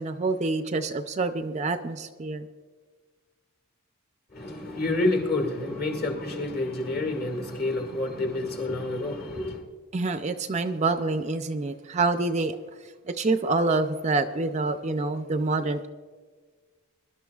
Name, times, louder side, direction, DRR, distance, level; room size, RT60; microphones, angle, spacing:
voice 1, 0.0-2.5 9.9-12.6 13.1-15.9, right 3 dB, 30° right, 8 dB, 0.4 m, -27 dB
voice 2, 4.3-9.6, left 2 dB, 45° left, 3 dB, 2.0 m, -28 dB
23.0 x 12.0 x 2.4 m, 1.5 s
head